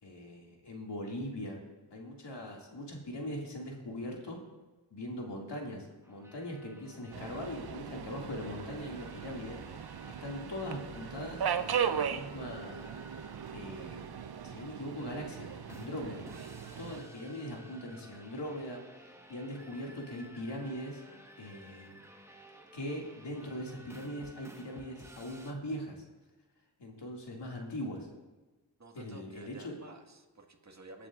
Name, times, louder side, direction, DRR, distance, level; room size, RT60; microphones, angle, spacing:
voice 1, 0.0-1.6 1.9-4.4 4.9-12.9 13.5-16.3 16.8-21.0 21.4-22.0 22.7-26.0 26.8-28.1 28.9-29.8, left 1 dB, 75° left, -1 dB, 2.2 m, -41 dB
sound 1, 6.0-25.5, equal, 5° right, 1.2 m, -55 dB
Subway metro underground, 7.1-17.0, right 7 dB, 60° right, 0.7 m, -38 dB
voice 2, 28.8-31.1, right 3 dB, 40° right, 2 dB, 1.8 m, -53 dB
19.5 x 9.8 x 2.5 m, 1.2 s
cardioid pair, 50°, 42 cm